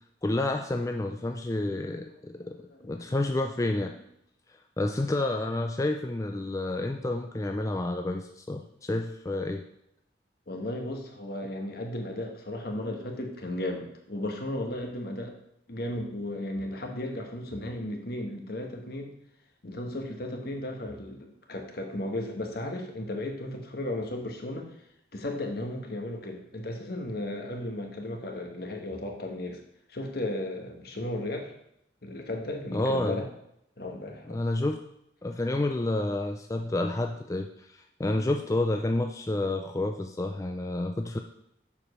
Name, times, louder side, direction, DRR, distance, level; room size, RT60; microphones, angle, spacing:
voice 1, 0.2-2.6 2.8-3.9 4.8-9.6 32.7-33.3 34.3-34.8 35.2-41.2, left 2 dB, 20° left, 4 dB, 0.4 m, -29 dB
voice 2, 2.3-3.2 4.8-4.9 10.5-15.3 15.7-19.2 19.6-24.7 25.1-29.6 29.9-31.5 32.0-33.3 33.8-34.4, left 1 dB, 60° left, 3 dB, 1.3 m, -35 dB
7.2 x 5.0 x 5.5 m, 0.76 s
head